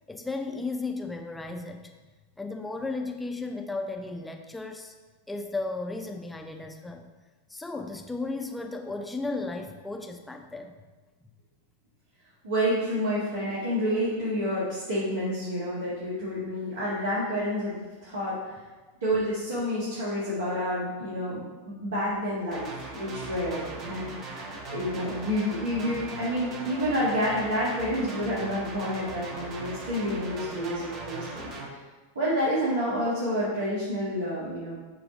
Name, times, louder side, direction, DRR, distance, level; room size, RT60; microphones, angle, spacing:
voice 1, 0.1-2.0 2.4-4.9 5.3-7.0 7.5-10.7, left 3 dB, 5° left, 4 dB, 0.6 m, -34 dB
voice 2, 12.4-18.6 19.0-31.5 32.1-34.8, equal, 70° right, -9 dB, 1.7 m, -29 dB
sound 1, 22.5-31.7, right 3 dB, 35° right, 1.1 m, -39 dB
7.0 x 3.4 x 5.0 m, 1.2 s
figure-of-eight pair, 90°, 0 cm